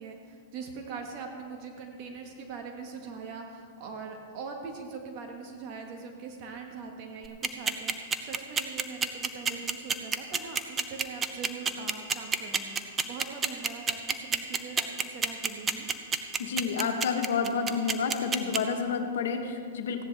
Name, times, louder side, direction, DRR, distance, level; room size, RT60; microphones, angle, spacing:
voice 1, 0.0-15.9, right 5 dB, 45° right, 2 dB, 1.5 m, -42 dB
sound 1, 7.2-18.6, right 6 dB, 20° right, 0.7 m, -27 dB
voice 2, 16.4-20.0, left 5 dB, 70° left, 5 dB, 1.2 m, -29 dB
15.5 x 10.5 x 3.5 m, 2.3 s
hypercardioid pair, 120°, 0 cm